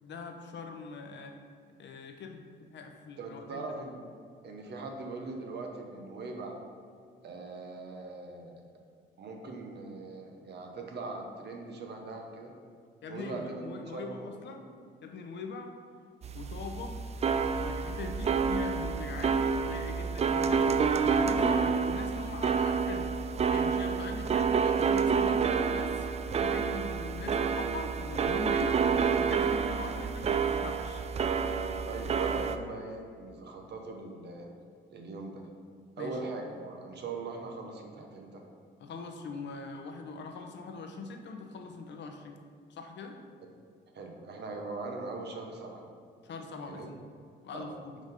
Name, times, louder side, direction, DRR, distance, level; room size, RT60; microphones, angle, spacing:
voice 1, 0.0-1.4 1.8-3.7 13.0-14.7 15.0-15.7 16.3-17.0 17.6-23.2 23.5-26.1 26.4-31.0 36.0-36.2 38.8-42.4 42.7-43.2 46.2-47.1 47.4-48.0, left 4 dB, 65° left, 4 dB, 0.8 m, -41 dB
voice 2, 3.2-4.0 4.4-6.6 7.2-8.6 9.2-12.5 13.1-14.3 31.8-34.5 34.9-35.4 36.0-38.4 43.9-45.8 46.6-46.9 47.5-47.7, right 3 dB, 55° right, 2 dB, 1.0 m, -41 dB
sound 1, 16.2-32.6, right 6 dB, 35° right, 0.4 m, -29 dB
5.0 x 4.0 x 5.2 m, 2.2 s
cardioid pair, 90°, 20 cm